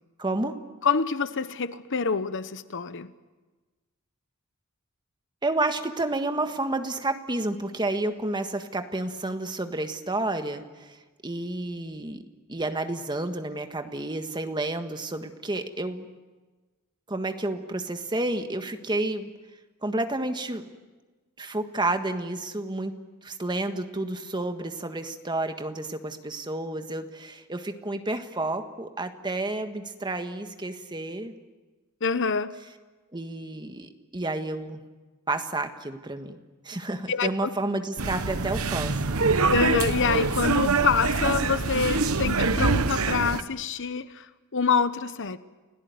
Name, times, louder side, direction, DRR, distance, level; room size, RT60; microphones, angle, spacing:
voice 1, 0.2-0.6 5.4-11.0 11.2-12.2 12.5-16.1 17.1-19.3 19.8-20.7 21.4-22.9 23.2-31.3 33.1-34.8 35.3-36.4 36.6-39.0, right 2 dB, 20° right, 1.6 m, -30 dB
voice 2, 0.8-3.1 32.0-32.6 37.1-37.5 39.5-45.4, left 5 dB, 60° left, 1.0 m, -26 dB
sound 1, 38.0-43.4, right 3 dB, 80° right, 1.1 m, -25 dB
29.5 x 17.5 x 9.6 m
head